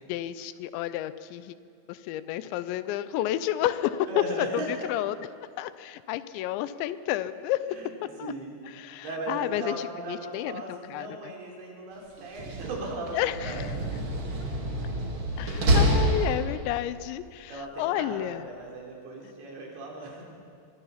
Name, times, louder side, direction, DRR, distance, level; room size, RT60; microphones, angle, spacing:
voice 1, 0.1-1.6 1.9-4.2 4.5-4.6 4.9-5.2 5.6-7.6 8.2-8.3 8.8-11.3 13.1-13.7 15.4-18.5, left 13 dB, 85° left, 14 dB, 2.9 m, -31 dB
voice 2, 4.1-4.9 7.7-8.5 9.0-13.6 15.3-15.8 17.5-20.3, right 2 dB, 75° right, -2 dB, 6.0 m, -37 dB
Slam, 12.2-16.9, right 1 dB, 40° right, 2.1 m, -27 dB
24.5 x 21.0 x 5.8 m, 2.3 s
omnidirectional pair, 5.2 m